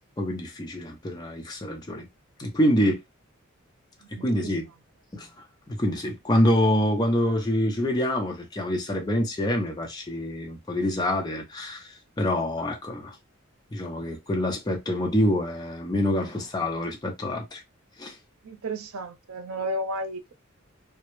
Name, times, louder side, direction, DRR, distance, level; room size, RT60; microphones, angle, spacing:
voice 1, 0.2-2.1 2.4-3.0 4.2-4.7 5.1-5.3 5.7-11.9 12.2-13.2 13.7-17.6 18.0-18.2, left 1 dB, 20° left, 0.5 m, -26 dB
voice 2, 18.4-20.3, right 1 dB, 90° right, 0.5 m, -32 dB
2.2 x 2.0 x 3.0 m
head